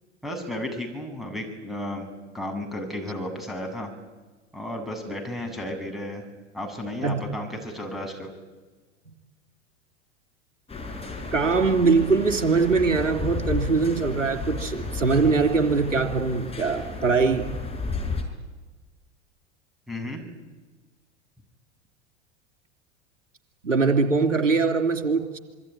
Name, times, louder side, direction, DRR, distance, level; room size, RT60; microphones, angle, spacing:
voice 1, 0.2-2.1 2.3-3.9 4.5-6.2 6.5-8.3 19.9-20.2, left 1 dB, ahead, 4 dB, 7.9 m, -33 dB
sound 1, 10.7-18.2, left 3 dB, 15° left, 6.7 m, -33 dB
voice 2, 11.3-17.5 23.6-25.2, right 4 dB, 80° right, 6 dB, 3.4 m, -22 dB
26.5 x 22.5 x 9.9 m, 1.3 s
figure-of-eight pair, 85°, 37 cm